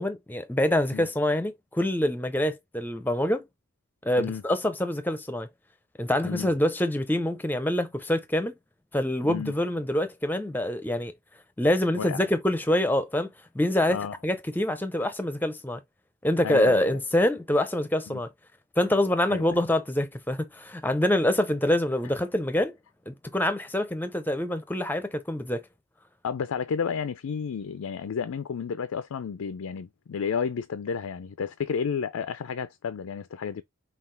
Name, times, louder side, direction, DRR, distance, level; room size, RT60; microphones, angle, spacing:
voice 1, 0.0-3.5 4.0-5.5 6.0-8.6 8.9-11.1 11.6-13.3 13.5-14.0 14.2-15.8 16.2-18.3 18.8-22.8 23.1-25.6, left 1 dB, 10° left, 0.5 m, -25 dB
voice 2, 16.4-17.0 18.1-18.2 19.3-19.6 26.2-33.6, left 6 dB, 90° left, 0.4 m, -31 dB
5.7 x 2.3 x 3.2 m
head